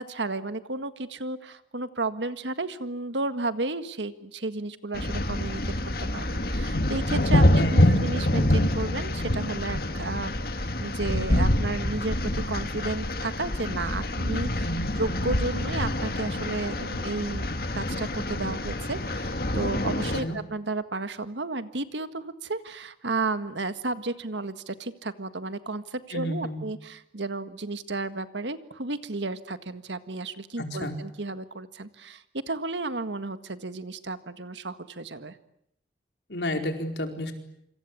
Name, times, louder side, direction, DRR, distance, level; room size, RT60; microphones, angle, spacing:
voice 1, 0.0-10.3 10.6-14.7 15.0-17.5 17.7-35.4, right 3 dB, 85° right, 11 dB, 1.7 m, -33 dB
sound 1, 4.9-20.2, left 1 dB, 55° left, 2.0 m, -26 dB
voice 2, 7.4-8.1 14.6-14.9 20.2-20.4 26.1-26.6 30.6-30.9 36.3-37.3, equal, 75° left, 5 dB, 4.5 m, -31 dB
27.0 x 26.0 x 8.6 m, 0.74 s
head